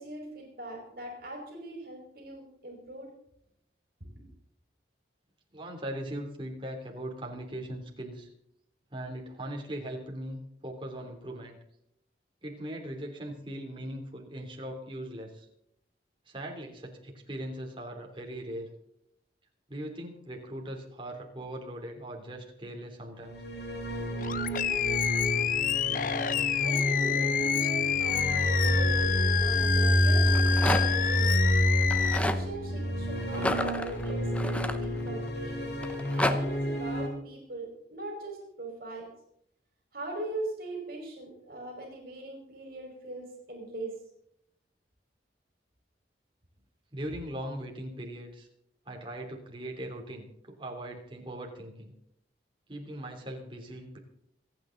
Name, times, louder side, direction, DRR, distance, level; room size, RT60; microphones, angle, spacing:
voice 1, 0.0-3.1 4.0-4.2 26.6-29.1 29.4-31.3 32.1-39.1 39.9-43.9 47.0-47.1, right 2 dB, 55° right, 1 dB, 5.2 m, -41 dB
voice 2, 5.5-8.3 8.9-11.6 12.4-15.5 16.3-18.7 19.7-23.4 46.9-48.5 48.8-51.9 52.7-54.0, right 1 dB, 30° right, 0 dB, 3.2 m, -40 dB
sound 1, 23.3-37.1, equal, 70° left, 6.2 m, -28 dB
Animal, 24.2-32.2, left 9 dB, 50° left, 0.7 m, -28 dB
Rattle, 30.2-31.1 31.8-32.4 33.3-35.3 35.8-36.4, left 1 dB, 5° left, 0.9 m, -30 dB
27.5 x 9.2 x 3.9 m, 0.74 s
head